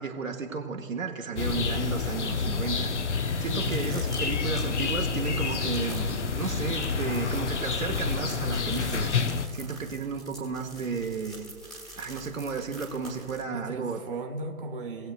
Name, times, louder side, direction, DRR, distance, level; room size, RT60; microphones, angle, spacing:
voice 1, 0.0-2.9 3.4-9.3 9.5-11.5 12.0-14.0, right 5 dB, 65° right, 2 dB, 1.2 m, -33 dB
sound 1, 1.4-9.5, left 5 dB, 55° left, 0.8 m, -29 dB
sound 2, 3.6-13.4, right 1 dB, ahead, 1.2 m, -46 dB
voice 2, 3.6-4.0 13.5-15.1, right 2 dB, 40° right, 2 dB, 1.2 m, -37 dB
19.0 x 7.6 x 2.4 m, 2.4 s
figure-of-eight pair, 140°, 42 cm